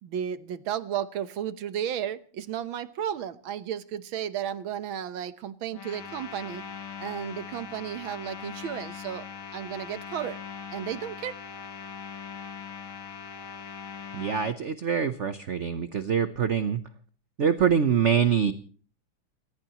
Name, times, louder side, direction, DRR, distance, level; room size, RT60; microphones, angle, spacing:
voice 1, 0.0-6.6 7.0-9.2 9.5-10.4 10.7-11.4, right 9 dB, 85° right, 13 dB, 1.8 m, -33 dB
sound 1, 5.7-14.6, left 6 dB, 85° left, 2.5 m, -41 dB
voice 2, 14.1-16.8 17.4-18.5, right 7 dB, 50° right, 10 dB, 0.9 m, -24 dB
28.5 x 15.0 x 3.0 m, 0.42 s
omnidirectional pair, 2.1 m